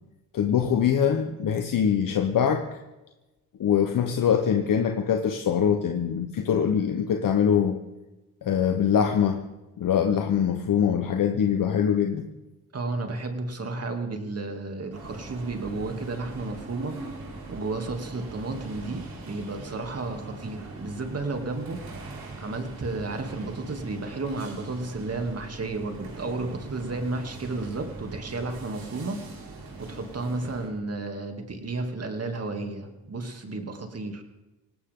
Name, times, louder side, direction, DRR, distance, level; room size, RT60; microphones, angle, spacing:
voice 1, 0.3-2.8 3.6-7.8 8.4-9.4 9.8-12.3, left 8 dB, 55° left, 6 dB, 1.2 m, -23 dB
voice 2, 12.7-17.0 17.5-21.8 22.4-29.2 29.8-34.2, right 3 dB, 40° right, 4 dB, 2.9 m, -32 dB
sound 1, 14.9-30.7, right 3 dB, 65° right, 5.4 m, -42 dB
18.5 x 18.0 x 3.8 m, 1.1 s
cardioid pair, 80°, 38 cm